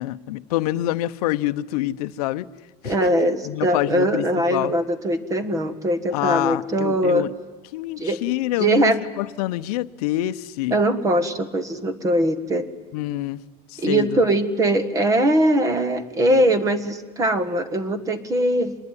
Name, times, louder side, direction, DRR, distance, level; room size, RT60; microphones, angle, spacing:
voice 1, 0.0-2.5 2.8-3.1 3.4-4.7 6.1-7.3 7.7-10.8 12.9-13.4 13.7-14.2, left 16 dB, 80° left, 13 dB, 0.9 m, -26 dB
voice 2, 2.8-7.3 8.0-8.2 8.6-9.0 10.7-12.7 13.8-18.8, right 1 dB, 15° right, 13 dB, 1.5 m, -21 dB
26.0 x 21.0 x 9.9 m, 1.4 s
cardioid pair, 170°, 19 cm